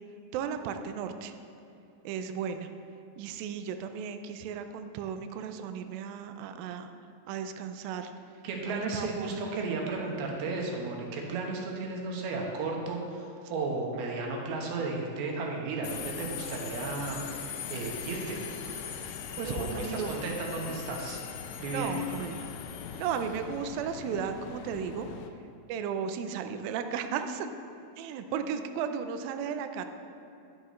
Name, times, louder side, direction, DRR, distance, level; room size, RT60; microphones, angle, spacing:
voice 1, 0.3-1.3 2.0-2.7 3.2-6.9 7.3-8.1 8.7-9.5 19.4-20.2 21.7-22.5 23.0-25.1 25.7-27.5 28.0-29.8, right 7 dB, 90° right, 8 dB, 2.0 m, -35 dB
voice 2, 8.4-17.2 17.7-18.4 19.4-21.2 21.6-22.0, right 3 dB, 75° right, 0 dB, 3.0 m, -34 dB
Subway metro underground, 15.8-25.3, left 8 dB, 85° left, 2.1 m, -40 dB
12.0 x 9.8 x 3.1 m, 2.6 s
omnidirectional pair, 4.8 m